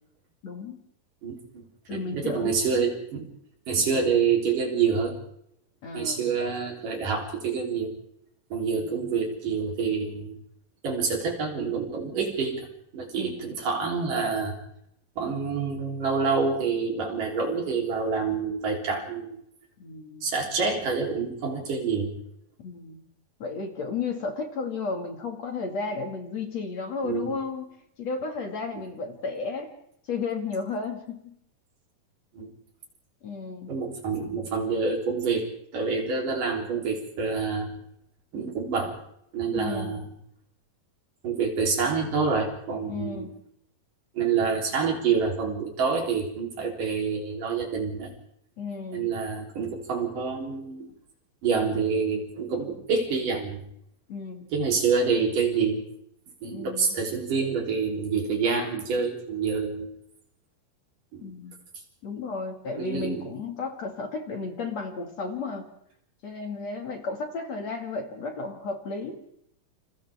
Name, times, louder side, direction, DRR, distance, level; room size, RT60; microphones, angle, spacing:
voice 1, 0.4-0.8 1.9-2.5 3.8-4.0 5.8-6.3 8.7-9.1 13.2-13.5 19.8-20.3 22.6-23.0 23.4-27.7 28.0-29.7 30.1-31.3 33.2-33.7 39.5-40.0 42.9-43.4 48.6-49.1 54.1-54.5 56.4-56.9 61.2-61.5 62.0-65.7 66.2-69.2, left 4 dB, 50° left, 3 dB, 3.0 m, -33 dB
voice 2, 1.2-1.6 1.9-3.3 3.7-5.2 5.9-7.9 8.5-10.4 10.8-12.7 12.9-14.6 15.2-19.4 20.2-22.1 27.0-27.3 32.3-32.5 33.7-37.7 38.3-38.9 39.3-40.1 41.2-43.3 44.2-48.1 48.9-50.9 51.4-53.6 54.5-55.8 56.4-59.9 61.1-61.3 62.8-63.2, right 5 dB, 60° right, 1 dB, 5.1 m, -27 dB
29.0 x 28.5 x 3.6 m, 0.74 s
omnidirectional pair, 4.3 m